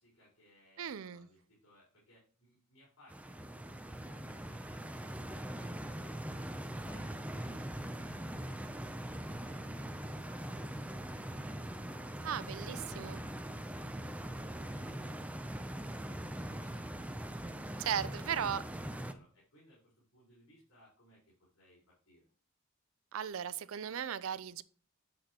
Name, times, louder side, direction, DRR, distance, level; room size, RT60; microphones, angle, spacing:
voice 1, 0.0-12.3 12.7-15.3 15.6-18.1 18.8-22.3, left 1 dB, 90° left, 4.0 m, -65 dB
voice 2, 0.8-1.3 12.2-13.2 17.8-18.6 23.1-24.6, right 8 dB, 75° right, 0.4 m, -37 dB
Stream, 3.1-19.1, right 1 dB, 5° right, 0.4 m, -42 dB
7.9 x 6.5 x 2.9 m
head